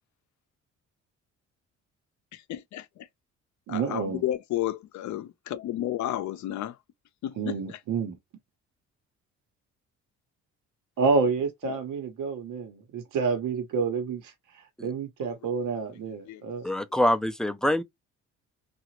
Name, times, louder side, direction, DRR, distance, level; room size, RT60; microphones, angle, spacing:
voice 1, 2.3-2.9 3.7-6.8 7.2-7.8 11.6-11.8 15.2-15.3 16.3-16.4, left 12 dB, 70° left, 0.5 m, -32 dB
voice 2, 3.7-4.2 7.4-8.2 11.0-14.3 14.8-16.6, right 5 dB, 90° right, 1.0 m, -28 dB
voice 3, 16.6-17.8, left 1 dB, ahead, 0.3 m, -24 dB
2.9 x 2.4 x 2.9 m
cardioid pair, 90°, 30 cm